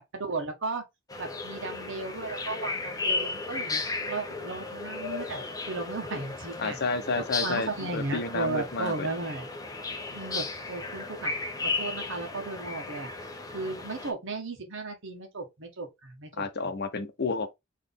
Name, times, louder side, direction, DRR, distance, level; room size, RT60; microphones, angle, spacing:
voice 1, 0.1-0.8 1.2-3.8 4.1-6.8 7.4-9.5 10.1-11.3 11.6-13.1 13.5-16.4, right 3 dB, 65° right, 1.4 m, -35 dB
sound 1, 1.1-14.1, left 3 dB, 20° left, 0.8 m, -35 dB
voice 2, 6.6-9.1 16.4-17.5, left 3 dB, 55° left, 0.8 m, -31 dB
4.1 x 3.2 x 3.5 m
head